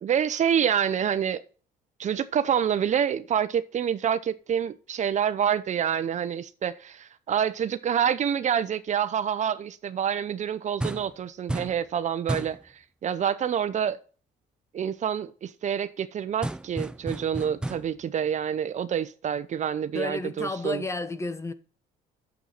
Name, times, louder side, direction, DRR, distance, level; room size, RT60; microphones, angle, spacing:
voice 1, 0.0-1.4 2.0-12.6 13.0-14.0 14.7-20.8, right 8 dB, 45° right, 0.8 m, -27 dB
sound 1, 10.8-11.2 11.5-11.8 12.3-12.6 16.4-18.0, right 1 dB, 5° right, 0.5 m, -32 dB
voice 2, 19.9-21.5, left 2 dB, 15° left, 1.0 m, -32 dB
9.2 x 7.3 x 4.1 m
cardioid pair, 110°, 17 cm